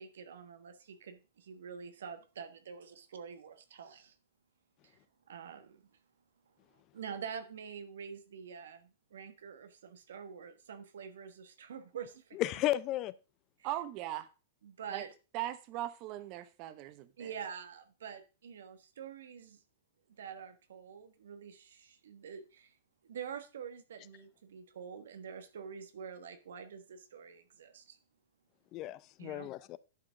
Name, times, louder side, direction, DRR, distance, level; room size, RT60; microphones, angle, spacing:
voice 1, 0.0-4.1 4.8-5.0 5.3-5.8 6.9-12.4 14.6-15.1 17.2-19.6 20.2-22.7 23.1-28.0 29.2-29.5, right 7 dB, 80° right, 1.3 m, -46 dB
voice 2, 12.4-13.1 28.7-29.8, left 14 dB, 35° left, 0.5 m, -33 dB
voice 3, 13.6-14.3 14.9-15.0 15.3-17.3, right 14 dB, 40° right, 1.1 m, -39 dB
11.0 x 4.9 x 5.1 m
hypercardioid pair, 135°, 0 cm